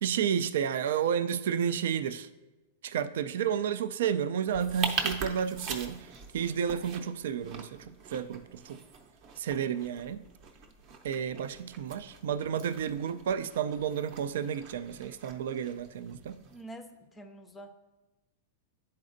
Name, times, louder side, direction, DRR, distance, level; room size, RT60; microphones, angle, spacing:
voice 1, 0.0-2.3 2.8-8.8 9.4-10.2 11.0-16.4, right 8 dB, 75° right, 13 dB, 0.3 m, -31 dB
sound 1, 4.5-16.6, right 5 dB, 40° right, 0.7 m, -42 dB
voice 2, 16.4-17.7, right 1 dB, 10° left, 6 dB, 0.4 m, -47 dB
11.0 x 4.2 x 2.5 m, 1.1 s
hypercardioid pair, 140°, 0 cm